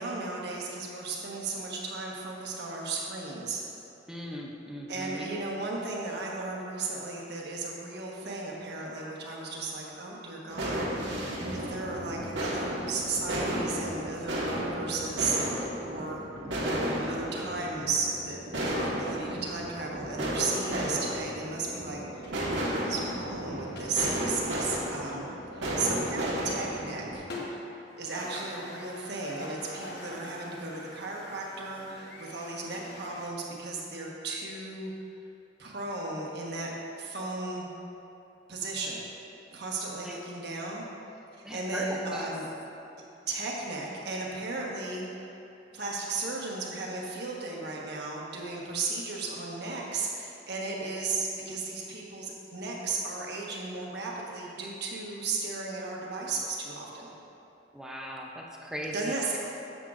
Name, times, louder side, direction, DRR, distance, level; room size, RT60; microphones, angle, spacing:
voice 1, 0.0-3.6 4.9-16.2 16.5-22.3 22.7-25.2 25.5-27.2 28.0-34.9 35.6-36.7 37.0-37.7 38.5-39.0 39.5-40.8 41.5-42.5 43.3-45.4 45.7-57.1 58.9-59.4, right 3 dB, 65° right, -2 dB, 1.2 m, -35 dB
voice 2, 4.1-5.3 40.0-40.2 41.4-42.3 57.7-59.1, equal, 5° right, -1 dB, 0.5 m, -38 dB
sound 1, 10.5-27.2, equal, 80° right, 1.4 m, -33 dB
sound 2, 22.1-33.3, left 1 dB, 60° left, 1.1 m, -46 dB
10.0 x 7.5 x 2.5 m, 2.8 s
head